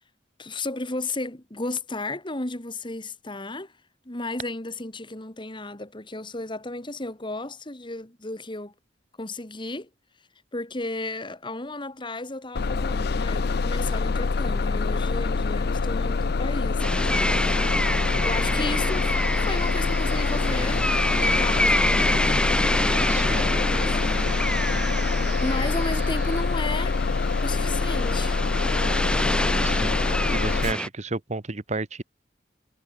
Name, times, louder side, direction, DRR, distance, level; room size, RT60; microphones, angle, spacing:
voice 1, 0.4-3.7 4.1-8.7 9.2-9.9 10.5-17.4 17.8-20.9 21.2-22.2 23.7-24.9 25.4-27.0 27.4-28.4, left 2 dB, 25° left, 2.3 m, -34 dB
Bus, 12.6-30.7, left 4 dB, 60° left, 0.5 m, -25 dB
sound 1, 16.8-30.9, left 1 dB, 5° left, 2.4 m, -27 dB
sound 2, 17.6-26.4, right 4 dB, 65° right, 7.6 m, -43 dB
voice 2, 23.1-23.6 29.6-30.0 30.3-32.0, right 3 dB, 40° right, 1.2 m, -31 dB
head